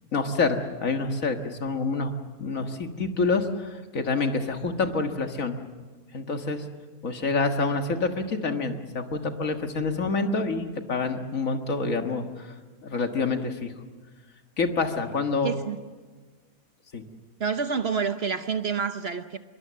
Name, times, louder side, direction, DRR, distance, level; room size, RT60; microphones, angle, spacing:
voice 1, 0.1-2.1 2.4-5.6 6.1-6.6 7.0-12.5 12.8-13.7 14.6-15.5 16.9-17.0, left 3 dB, 65° left, 5 dB, 2.0 m, -27 dB
voice 2, 15.4-15.8 17.4-19.4, right 6 dB, 50° right, 10 dB, 1.0 m, -28 dB
25.0 x 22.5 x 7.5 m, 1.4 s
omnidirectional pair, 1.5 m